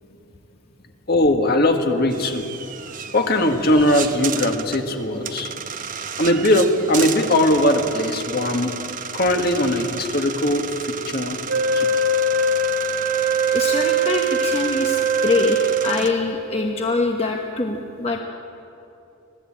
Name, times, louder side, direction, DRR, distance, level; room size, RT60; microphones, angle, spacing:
voice 1, 1.1-2.4 3.1-5.5 6.2-8.8 9.1-11.4 11.7-12.0, left 1 dB, 45° left, 4 dB, 1.8 m, -20 dB
sound 1, 2.1-16.1, right 7 dB, 40° right, 1.0 m, -33 dB
Wind instrument woodwind instrument, 11.5-16.2, right 2 dB, 70° right, 1.4 m, -21 dB
voice 2, 13.5-15.6 15.8-18.2, left 3 dB, 30° left, 1 dB, 1.1 m, -23 dB
25.5 x 17.5 x 8.8 m, 2.9 s
head